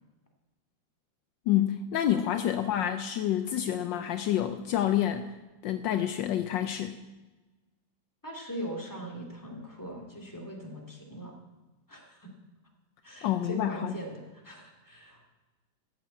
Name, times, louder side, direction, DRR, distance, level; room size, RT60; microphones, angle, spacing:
voice 1, 1.5-5.3 5.6-7.0 13.2-13.9, left 11 dB, 75° left, 9 dB, 1.3 m, -28 dB
voice 2, 8.2-11.3 11.9-12.3 13.0-15.3, right 1 dB, 10° left, 0 dB, 2.5 m, -41 dB
14.0 x 7.5 x 8.3 m, 1.2 s
omnidirectional pair, 2.1 m